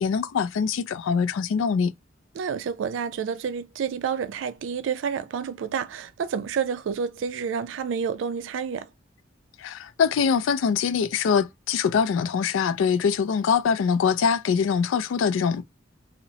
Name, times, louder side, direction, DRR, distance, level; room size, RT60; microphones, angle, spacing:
voice 1, 0.0-1.9 9.6-15.6, left 6 dB, 85° left, 0.3 m, -23 dB
voice 2, 2.4-8.9, right 6 dB, 70° right, 0.3 m, -29 dB
2.8 x 2.0 x 2.7 m
head